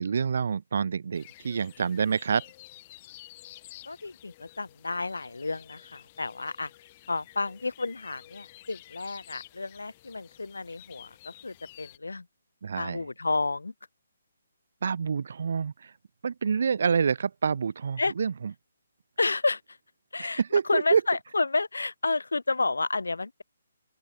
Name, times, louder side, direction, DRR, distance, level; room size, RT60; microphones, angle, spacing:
voice 1, 0.0-2.4 12.6-13.0 14.8-15.9 16.2-18.3 20.2-21.0, right 6 dB, 65° right, 0.5 m, -27 dB
sound 1, 1.1-12.0, left 16 dB, 35° left, 2.7 m, -51 dB
voice 2, 3.9-6.7 7.1-12.3 12.7-13.7 18.0-18.1 19.2-19.8 20.1-23.4, left 3 dB, 90° left, 4.6 m, -31 dB
open air
hypercardioid pair, 150°, 0 cm